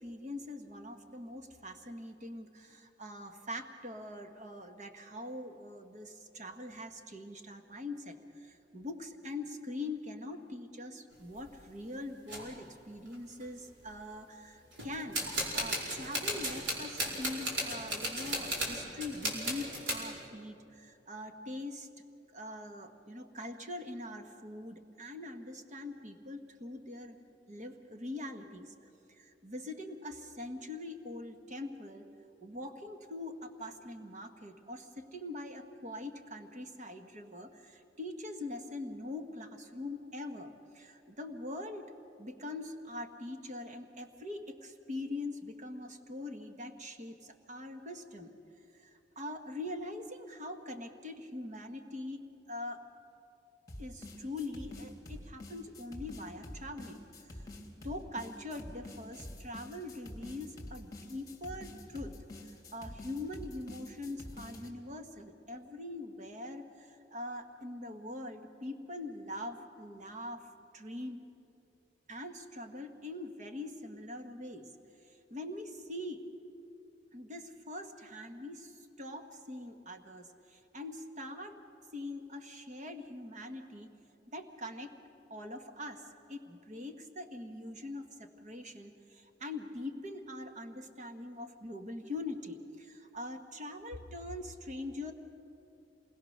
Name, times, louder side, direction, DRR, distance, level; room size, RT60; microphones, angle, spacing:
voice 1, 0.0-21.9 22.3-27.2 27.5-28.7 29.1-32.0 32.4-41.9 42.2-48.3 48.7-52.2 52.5-52.8 53.8-57.4 57.8-62.1 62.4-70.4 70.7-71.2 72.1-74.7 75.3-76.2 77.1-81.6 81.9-83.9 84.3-84.9 85.3-86.0 86.3-95.1, left 1 dB, 40° right, 6 dB, 1.6 m, -43 dB
sound 1, 11.1-11.5 12.3-12.4 13.1-13.2 13.4-13.9 14.7-20.0, right 1 dB, 85° right, 4.9 m, -35 dB
sound 2, 53.7-64.7, left 1 dB, 20° left, 2.9 m, -47 dB
27.5 x 21.0 x 6.6 m, 2.7 s
head